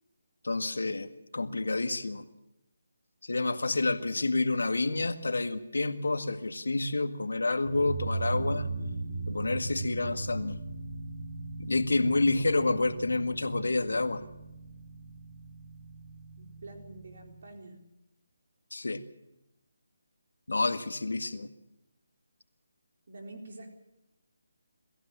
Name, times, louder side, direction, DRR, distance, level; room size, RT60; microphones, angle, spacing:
voice 1, 0.4-2.2 3.2-8.7 9.3-10.6 11.6-14.2 18.7-19.0 20.5-21.5, left 2 dB, 70° left, 10 dB, 1.8 m, -29 dB
sound 1, 7.6-17.5, right 3 dB, 25° right, 4.1 m, -44 dB
sound 2, 7.7-14.3, right 3 dB, 40° right, 4.5 m, -38 dB
voice 2, 16.4-17.8 23.1-23.7, right 2 dB, 55° right, 4 dB, 4.0 m, -47 dB
24.5 x 15.0 x 7.3 m, 0.91 s
figure-of-eight pair, 150°, 0 cm